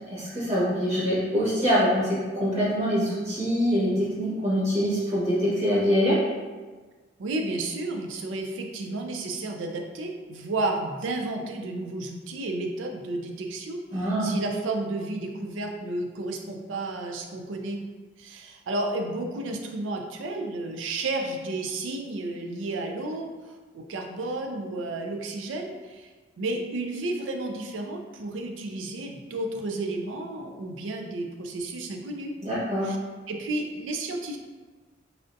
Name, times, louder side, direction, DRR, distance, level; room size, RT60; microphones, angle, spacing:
voice 1, 0.1-6.2 13.9-14.3 32.4-32.9, equal, 35° right, -8 dB, 0.9 m, -24 dB
voice 2, 7.2-17.8 18.2-26.1 26.4-32.3 32.8-33.0 33.3-34.4, right 2 dB, 85° right, 3 dB, 0.4 m, -32 dB
3.3 x 2.5 x 2.5 m, 1.3 s
head